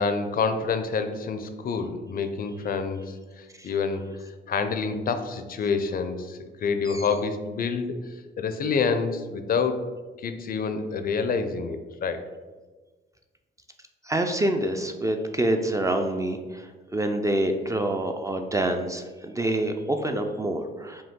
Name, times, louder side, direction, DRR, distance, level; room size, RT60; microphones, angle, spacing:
voice 1, 0.0-4.0 4.5-7.9 8.4-9.8 10.2-12.2, left 5 dB, 50° left, 8 dB, 0.4 m, -27 dB
voice 2, 14.0-21.0, right 1 dB, 15° right, 5 dB, 0.3 m, -27 dB
5.1 x 2.3 x 3.6 m, 1.3 s
cardioid pair, 90°, 20 cm